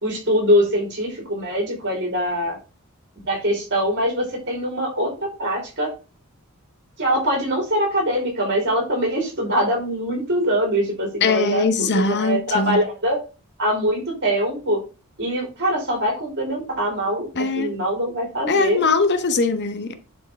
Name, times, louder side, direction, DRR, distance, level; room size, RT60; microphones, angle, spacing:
voice 1, 0.0-2.6 3.2-5.9 7.0-13.2 13.6-14.8 15.2-18.8, equal, 55° right, 3.9 m, -23 dB
voice 2, 11.2-12.8 17.4-17.7 18.5-19.9, left 4 dB, 50° left, 0.8 m, -21 dB
10.5 x 4.4 x 3.5 m
head